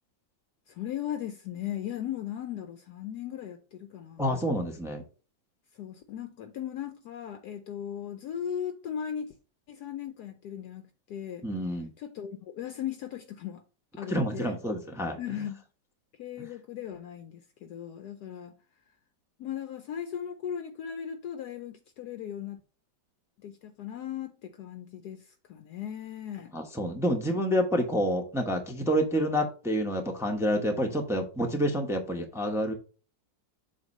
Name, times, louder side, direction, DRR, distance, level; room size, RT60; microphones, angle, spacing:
voice 1, 0.7-4.7 5.7-9.4 9.7-11.4 12.0-13.6 13.9-14.5 15.2-15.6 16.2-18.5 19.4-22.6 23.4-26.5, left 9 dB, 70° left, 1.0 m, -37 dB
voice 2, 4.2-5.0 11.4-11.9 14.1-15.2 26.5-32.7, equal, 5° right, 0.5 m, -28 dB
7.6 x 2.7 x 5.3 m
omnidirectional pair, 2.0 m